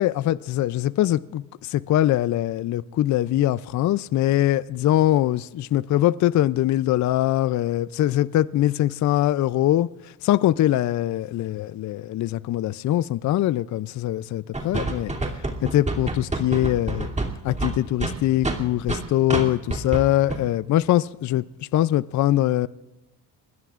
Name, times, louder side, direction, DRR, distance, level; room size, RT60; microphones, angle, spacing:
voice 1, 0.0-9.9 10.2-15.2 15.6-17.1 17.4-22.7, left 13 dB, 45° left, 0.5 m, -22 dB
sound 1, 14.5-19.0 19.3-19.4 19.7-20.0 20.3-20.4, right 2 dB, 15° right, 2.8 m, -27 dB
28.0 x 20.5 x 2.5 m
supercardioid pair, 80°, 44 cm